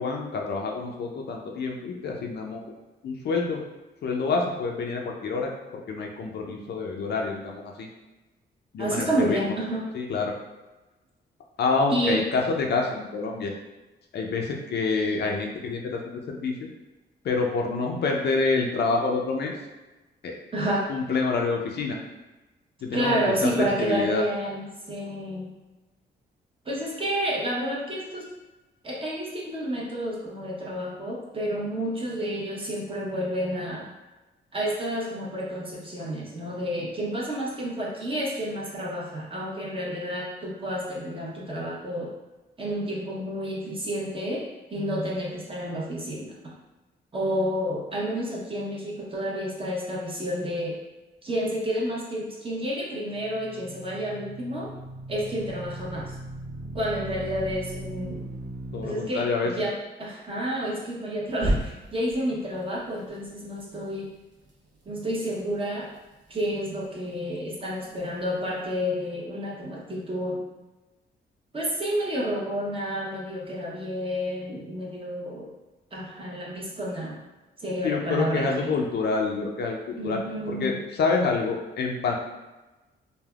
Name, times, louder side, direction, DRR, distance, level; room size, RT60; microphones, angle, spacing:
voice 1, 0.0-2.6 3.0-3.6 4.0-5.5 5.9-7.9 8.7-9.6 9.9-10.4 11.6-13.5 14.1-16.6 17.2-19.5 20.2-20.4 20.9-22.0 22.8-24.2 58.7-59.7 77.8-80.2 80.5-82.1, left 4 dB, 60° left, 1 dB, 0.5 m, -27 dB
voice 2, 8.8-9.9 11.9-12.2 20.5-20.9 22.9-25.5 26.6-28.3 28.8-33.9 34.5-42.1 42.6-44.4 44.7-46.6 47.1-50.8 51.2-54.7 55.1-56.1 56.7-58.2 58.8-64.1 64.9-65.9 66.3-70.4 71.5-75.5 75.9-77.2 77.6-78.7 80.0-80.8, equal, 30° right, -4 dB, 0.9 m, -30 dB
sound 1, 53.0-58.8 61.4-62.1, right 1 dB, 75° right, 0.8 m, -34 dB
3.3 x 2.2 x 2.3 m, 1.1 s
cardioid pair, 85°, 19 cm